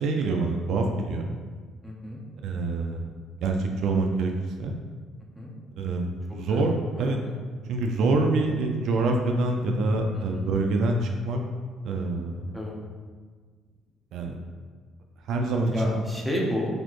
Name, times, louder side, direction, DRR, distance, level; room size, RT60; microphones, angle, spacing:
voice 1, 0.0-1.3 2.4-3.1 3.4-4.3 4.6-4.8 5.8-6.7 7.0-7.2 7.7-11.4 11.8-12.6 14.1-14.4 15.3-15.7, right 3 dB, 70° right, 3 dB, 0.4 m, -26 dB
voice 2, 1.8-2.2 5.3-5.5 6.3-7.3 10.2-10.5 12.5-12.8 15.7-16.7, equal, ahead, -3 dB, 0.6 m, -32 dB
4.1 x 2.8 x 3.0 m, 1.5 s
cardioid pair, 130°, 0 cm